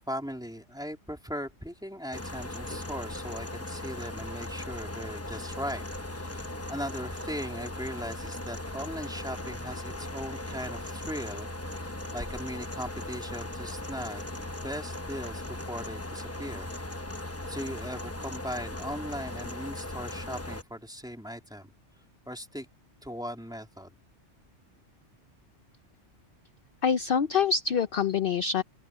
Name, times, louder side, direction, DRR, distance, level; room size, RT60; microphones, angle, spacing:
voice 1, 0.0-5.8 6.1-11.5 11.8-16.7 17.0-17.1 17.5-21.7 22.3-22.7 23.0-24.0, equal, 5° right, 3.3 m, -39 dB
sound 1, 2.1-20.6, left 1 dB, 15° left, 0.9 m, -38 dB
voice 2, 26.8-28.6, left 6 dB, 55° left, 0.8 m, -25 dB
open air
omnidirectional pair, 1.3 m